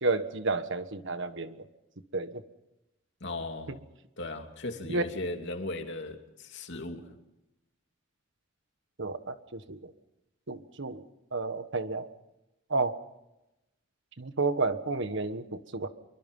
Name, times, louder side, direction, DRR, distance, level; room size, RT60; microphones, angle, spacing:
voice 1, 0.0-1.5 2.1-2.4 3.7-3.8 4.9-5.0 9.0-9.9 10.5-11.0 11.3-12.1 12.7-12.9 14.2-15.9, right 3 dB, 65° right, 10 dB, 1.4 m, -31 dB
voice 2, 3.2-3.8 4.2-7.1, left 2 dB, 60° left, 4 dB, 2.8 m, -37 dB
26.0 x 23.5 x 5.5 m, 0.93 s
head